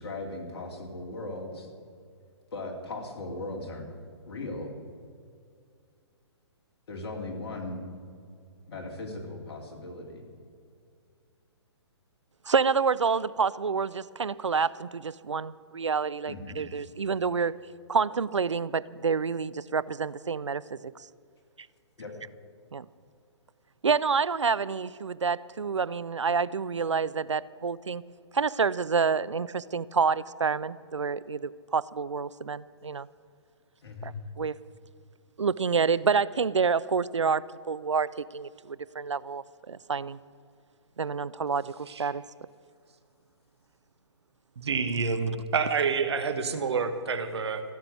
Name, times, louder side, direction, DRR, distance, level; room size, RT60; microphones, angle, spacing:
voice 1, 0.0-1.7 2.5-3.9 4.3-4.8 6.9-7.8 8.7-10.3 16.3-16.6 22.0-22.1 33.8-34.1, left 2 dB, 60° left, 2 dB, 2.6 m, -38 dB
voice 2, 12.5-17.5 17.9-20.9 22.7-22.9 23.8-28.0 28.3-33.1 34.0-34.5 35.4-40.2 41.0-42.2, right 5 dB, 90° right, 19 dB, 0.4 m, -28 dB
voice 3, 44.6-47.6, right 5 dB, 65° right, 9 dB, 1.2 m, -28 dB
15.5 x 6.8 x 9.0 m, 2.3 s
figure-of-eight pair, 130°, 15 cm